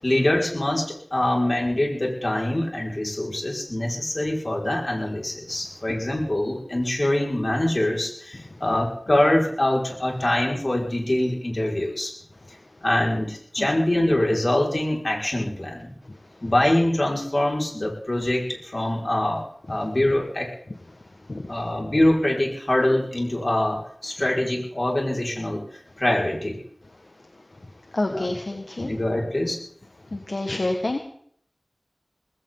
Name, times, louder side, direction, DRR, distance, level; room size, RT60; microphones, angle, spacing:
voice 1, 0.0-12.1 12.8-15.9 16.4-19.4 19.7-20.5 21.5-25.6 26.0-26.6 28.1-28.3 28.8-29.6, left 1 dB, 45° left, -1 dB, 5.6 m, -24 dB
voice 2, 27.6-28.9 30.1-31.0, left 2 dB, 65° left, 4 dB, 1.7 m, -28 dB
20.0 x 16.5 x 4.0 m, 0.62 s
wide cardioid pair, 50°, 0 cm